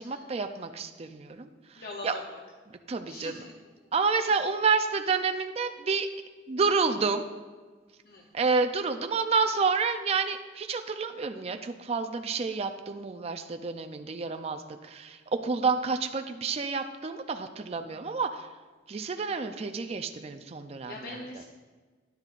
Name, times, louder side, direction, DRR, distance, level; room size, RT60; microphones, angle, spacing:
voice 1, 0.0-2.1 2.9-3.4 3.9-6.1 6.5-7.3 8.3-18.5 18.9-21.2, right 4 dB, 35° right, 6 dB, 0.4 m, -29 dB
voice 2, 1.8-2.4 3.1-3.5 4.3-4.4 8.0-8.3 20.9-21.4, left 2 dB, 60° left, 0 dB, 0.7 m, -42 dB
11.5 x 10.5 x 2.5 m, 1.4 s
head